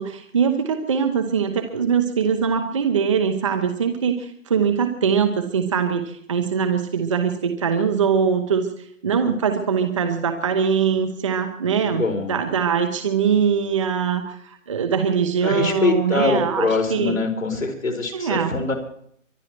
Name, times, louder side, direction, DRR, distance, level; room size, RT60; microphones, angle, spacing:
voice 1, 0.0-8.7 9.0-17.2 18.1-18.6, right 7 dB, 25° right, 7 dB, 0.9 m, -22 dB
voice 2, 11.8-12.3 15.4-18.7, left 3 dB, 85° left, 3 dB, 5.2 m, -23 dB
24.0 x 10.5 x 4.6 m, 0.64 s
hypercardioid pair, 160°, 39 cm